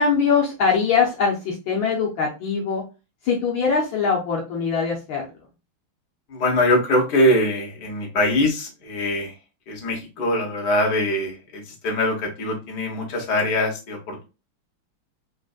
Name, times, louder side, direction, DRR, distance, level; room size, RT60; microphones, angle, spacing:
voice 1, 0.0-2.8 3.2-5.3, left 5 dB, 70° left, -2 dB, 1.6 m, -22 dB
voice 2, 6.3-9.4 9.7-14.2, left 1 dB, 55° left, 0 dB, 1.6 m, -23 dB
4.1 x 3.2 x 2.4 m, 0.29 s
omnidirectional pair, 2.4 m